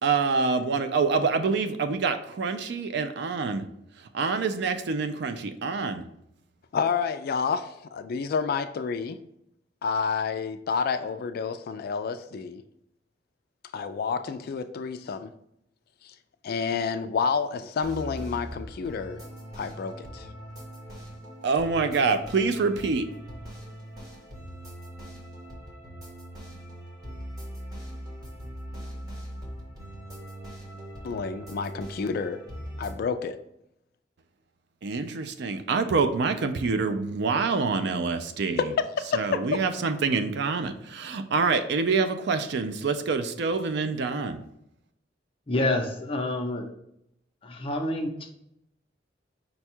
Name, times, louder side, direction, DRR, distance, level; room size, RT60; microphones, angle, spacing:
voice 1, 0.0-3.7 4.1-6.0 21.4-23.1 34.8-38.6 39.1-44.4, right 4 dB, 65° right, 8 dB, 0.4 m, -26 dB
voice 2, 6.7-9.2 9.8-12.6 13.7-15.3 16.0-16.1 16.4-19.2 19.6-20.3 31.0-32.4 32.8-33.4 38.6-39.6, left 5 dB, 55° left, 10 dB, 0.3 m, -29 dB
sound 1, 17.8-32.9, equal, 20° right, 1.4 m, -41 dB
voice 3, 45.5-46.7 47.4-48.3, left 1 dB, 30° left, 3 dB, 0.7 m, -28 dB
5.3 x 2.3 x 4.3 m, 0.77 s
head